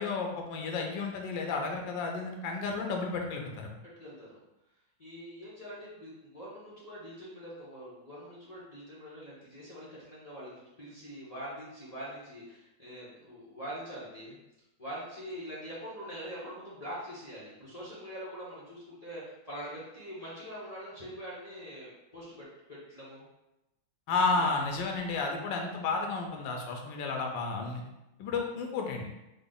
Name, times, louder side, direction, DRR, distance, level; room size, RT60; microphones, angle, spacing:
voice 1, 0.0-3.7 24.1-27.8 28.2-29.1, left 4 dB, 80° left, 2 dB, 1.3 m, -32 dB
voice 2, 4.0-4.4 5.0-14.4 14.8-23.2 24.3-24.5, equal, 50° left, -8 dB, 0.4 m, -44 dB
3.9 x 2.0 x 3.7 m, 0.93 s
omnidirectional pair, 2.0 m